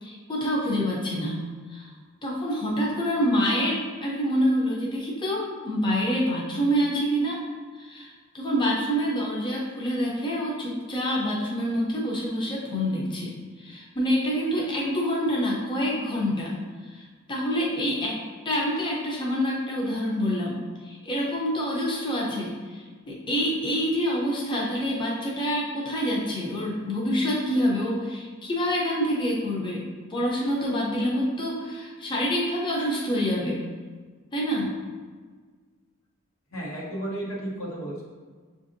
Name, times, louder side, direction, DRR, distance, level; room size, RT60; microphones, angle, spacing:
voice 1, 0.0-1.4 1.7-1.9 2.2-7.4 7.8-16.6 16.8-18.2 18.4-20.6 20.8-29.8 30.1-33.6 34.3-34.7, equal, 25° left, -4 dB, 0.6 m, -27 dB
voice 2, 36.5-38.1, right 1 dB, 85° left, -4 dB, 1.1 m, -33 dB
6.6 x 2.6 x 2.5 m, 1.5 s
head